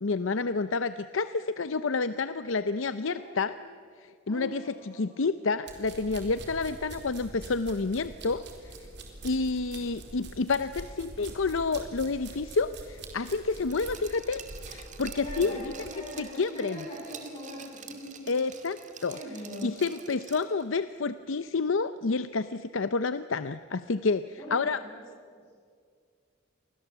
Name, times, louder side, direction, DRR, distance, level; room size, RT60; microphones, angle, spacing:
voice 1, 0.0-3.6 4.0-8.7 9.2-14.4 14.7-15.6 16.2-16.8 18.3-19.2 19.6-24.8, left 4 dB, 75° left, 12 dB, 0.7 m, -29 dB
voice 2, 3.0-3.6 4.3-5.0 15.2-18.4 19.1-19.8 24.4-25.0 25.3-25.5, left 1 dB, 25° left, -7 dB, 7.8 m, -41 dB
sound 1, 5.7-15.9, right 2 dB, 55° right, 4.1 m, -45 dB
Glass, 13.7-20.6 21.0-21.1, right 6 dB, 35° right, 2.4 m, -47 dB
29.5 x 24.0 x 8.1 m, 2.1 s
head